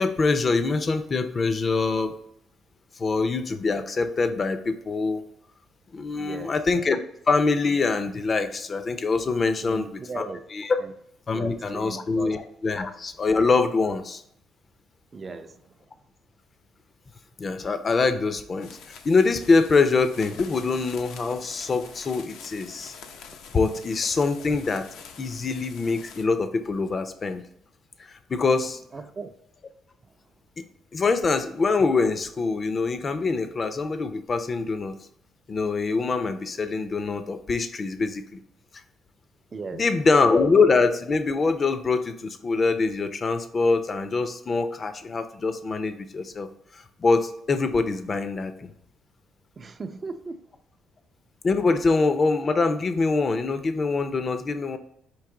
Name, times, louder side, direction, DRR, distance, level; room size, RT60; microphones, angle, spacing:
voice 1, 0.0-2.2 3.0-5.2 5.9-7.0 7.3-10.8 11.3-14.2 17.4-18.7 19.0-22.9 23.5-24.9 25.2-27.4 28.0-28.8 30.6-30.7 30.9-35.0 35.5-38.4 39.7-46.5 46.7-48.7 51.4-54.8, left 4 dB, 35° left, 0.5 m, -24 dB
voice 2, 6.1-6.6 9.6-10.4 10.8-10.9 11.3-12.4 12.7-12.8 15.1-15.7 28.9-29.3 39.5-39.9 49.6-50.4, right 4 dB, 35° right, 0.4 m, -38 dB
sound 1, 18.5-26.2, left 6 dB, 85° left, 0.6 m, -45 dB
4.6 x 2.7 x 3.7 m
cardioid pair, 95°, 0 cm